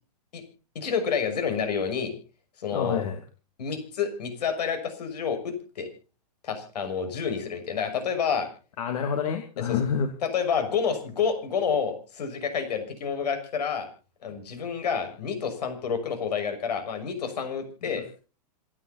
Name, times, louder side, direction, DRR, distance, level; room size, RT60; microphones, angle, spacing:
voice 1, 0.7-2.1 2.6-3.0 3.6-5.9 6.4-8.5 9.7-9.8 10.2-13.9 14.2-18.0, left 6 dB, 80° left, 8 dB, 6.2 m, -29 dB
voice 2, 2.7-3.2 8.8-10.1 17.8-18.1, left 7 dB, 60° left, 5 dB, 2.8 m, -28 dB
27.0 x 9.9 x 4.2 m, 0.36 s
hypercardioid pair, 145°, 21 cm